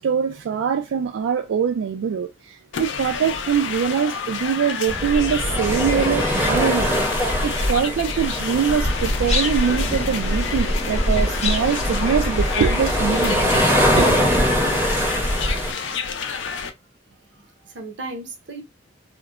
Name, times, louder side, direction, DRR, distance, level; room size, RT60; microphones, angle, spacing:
voice 1, 0.0-7.0 7.4-13.6 14.0-14.2, right 7 dB, 85° right, 0.3 m, -23 dB
sound 1, 2.7-16.7, left 6 dB, 70° left, 0.4 m, -30 dB
sound 2, 4.9-15.7, equal, 10° right, 0.6 m, -22 dB
sound 3, 8.8-13.8, left 4 dB, 35° left, 0.8 m, -33 dB
voice 2, 17.1-18.6, right 2 dB, 65° right, 0.7 m, -37 dB
3.0 x 2.0 x 2.3 m
head